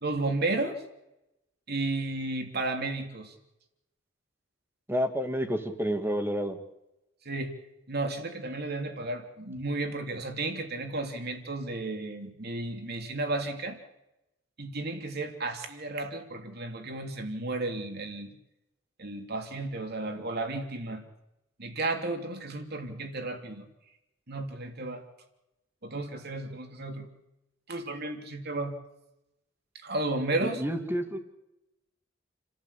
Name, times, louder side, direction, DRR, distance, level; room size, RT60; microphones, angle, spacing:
voice 1, 0.0-0.8 1.7-3.3 7.2-7.5 7.9-13.8 14.6-18.3 19.0-21.0 21.6-23.7 24.3-25.0 25.8-27.1 27.7-28.7 29.8-30.6, right 2 dB, 55° right, 5 dB, 3.3 m, -33 dB
voice 2, 4.9-6.6 30.4-31.2, equal, 10° right, 6 dB, 2.3 m, -29 dB
30.0 x 14.5 x 8.5 m, 0.91 s
head